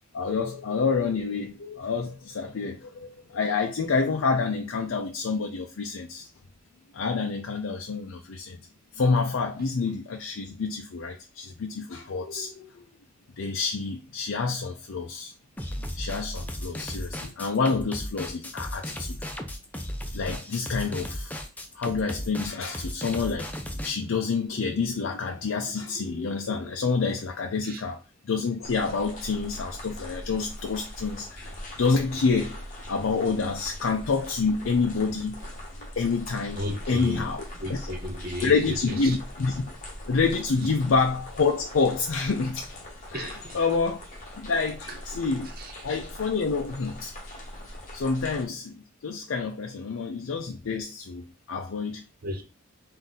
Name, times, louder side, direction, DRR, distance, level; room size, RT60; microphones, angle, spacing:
voice 1, 0.1-6.3 6.9-8.6 8.9-12.9 13.4-15.3 16.0-19.2 20.1-21.3 21.7-31.5 31.8-35.4 36.0-37.4 37.7-37.9 38.4-39.7 40.1-42.7 43.1-44.0 44.4-45.5 45.8-47.1 47.9-52.0, left 4 dB, 75° left, 0.5 m, -28 dB
sound 1, 15.6-23.9, equal, 10° left, 0.4 m, -35 dB
sound 2, 28.6-48.4, left 1 dB, 35° left, 1.0 m, -41 dB
voice 2, 36.5-37.3 37.6-39.2 40.6-40.7 43.1-43.6 44.9-45.0 45.6-45.9 52.2-52.4, equal, 45° right, 0.8 m, -35 dB
4.0 x 2.7 x 3.7 m
head